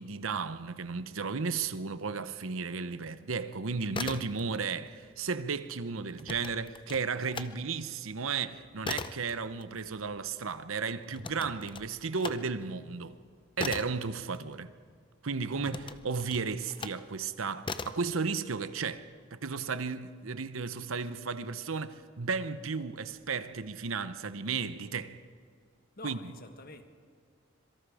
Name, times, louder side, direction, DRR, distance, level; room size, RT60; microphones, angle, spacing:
voice 1, 0.0-13.2 13.6-14.7 15.2-25.2 26.0-26.2, right 5 dB, 80° right, 0.9 m, -34 dB
sound 1, 3.8-4.8 5.0-7.5 7.9-15.0 15.6-17.1 17.6-18.1, left 4 dB, 25° left, 0.7 m, -40 dB
voice 2, 26.0-26.9, left 3 dB, 45° left, 1.6 m, -47 dB
26.0 x 23.0 x 4.9 m
head